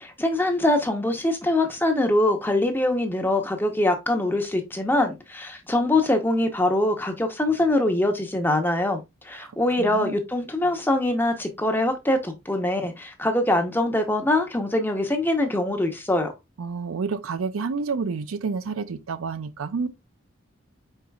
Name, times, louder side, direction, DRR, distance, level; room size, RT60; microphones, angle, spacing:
voice 1, 0.0-9.0 9.2-16.3, left 1 dB, 10° left, 0.7 m, -23 dB
voice 2, 9.8-10.2 16.6-19.9, right 5 dB, 90° right, 0.5 m, -29 dB
4.9 x 4.6 x 2.3 m
head